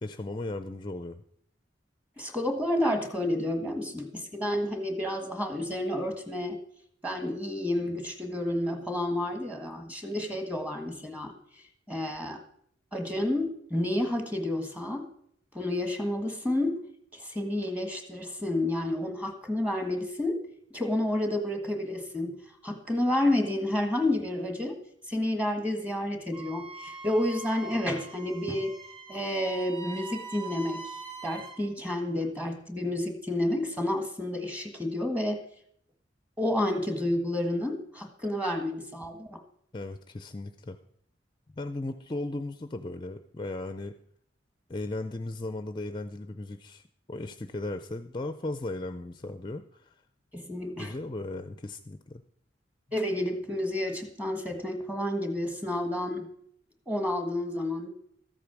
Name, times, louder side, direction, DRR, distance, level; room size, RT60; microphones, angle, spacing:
voice 1, 0.0-1.2 39.7-40.8 41.6-43.9 44.7-46.8 47.1-50.0 50.8-52.2, left 2 dB, 25° left, 9 dB, 0.5 m, -36 dB
voice 2, 2.2-6.6 7.0-11.3 11.9-12.4 12.9-15.1 15.5-16.8 17.1-20.4 20.7-22.4 22.6-24.8 25.1-28.7 29.1-30.8 31.2-35.4 36.4-39.4 50.3-50.9 52.9-56.3 56.9-57.9, left 1 dB, 10° right, 6 dB, 1.5 m, -30 dB
Wind instrument woodwind instrument, 26.3-31.6, right 3 dB, 30° right, 2.0 m, -42 dB
13.5 x 8.6 x 6.1 m, 0.67 s
head